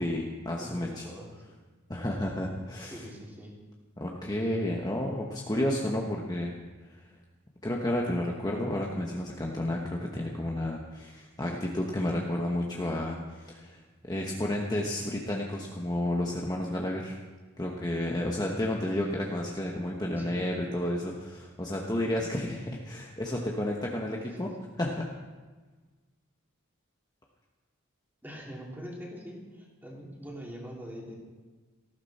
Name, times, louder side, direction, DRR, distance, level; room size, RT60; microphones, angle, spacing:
voice 1, 0.0-1.1 1.9-3.0 4.0-6.5 7.6-17.2 17.6-24.5 24.8-25.1, left 1 dB, 20° left, -1 dB, 1.2 m, -31 dB
voice 2, 0.6-1.4 2.8-3.6 20.1-20.5 24.2-24.7 28.2-31.2, equal, 10° right, -3 dB, 3.0 m, -43 dB
18.0 x 15.0 x 4.3 m, 1.3 s
head